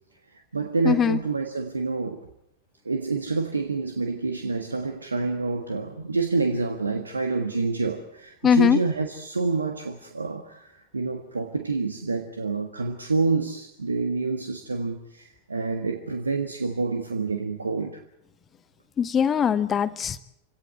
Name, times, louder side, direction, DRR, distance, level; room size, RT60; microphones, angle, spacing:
voice 1, 0.3-2.2 2.8-18.0, right 3 dB, 75° right, 1.5 m, -28 dB
voice 2, 0.8-1.2 8.4-8.8 19.0-20.2, left 8 dB, 25° left, 0.8 m, -21 dB
27.5 x 17.5 x 7.6 m
figure-of-eight pair, 90°, 0 cm